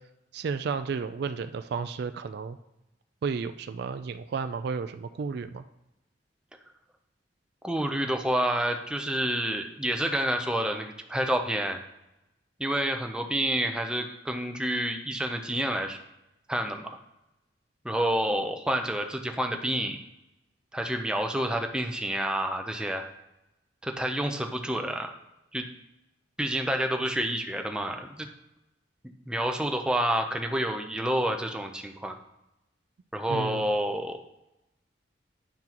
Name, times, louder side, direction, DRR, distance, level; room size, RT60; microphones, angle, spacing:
voice 1, 0.3-2.6 3.2-5.6 33.3-33.6, right 5 dB, 60° right, 10 dB, 0.3 m, -32 dB
voice 2, 7.6-11.8 12.6-16.0 16.5-16.9 17.8-20.0 20.7-23.1 23.8-25.1 25.5-25.7 26.4-28.3 29.3-32.2 33.1-34.2, right 1 dB, 5° right, 4 dB, 0.6 m, -28 dB
8.9 x 6.0 x 2.9 m, 0.91 s
head